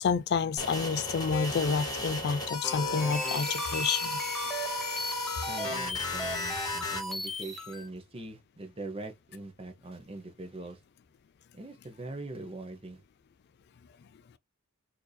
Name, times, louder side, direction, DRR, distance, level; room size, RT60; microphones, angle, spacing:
voice 1, 0.0-4.2, left 5 dB, 50° left, 0.3 m, -29 dB
sound 1, 0.6-7.0, left 3 dB, 20° left, 1.1 m, -35 dB
sound 2, 2.8-7.9, equal, ahead, 0.7 m, -36 dB
voice 2, 5.5-10.8 11.5-13.0, right 2 dB, 25° right, 0.8 m, -42 dB
4.5 x 2.7 x 2.2 m
head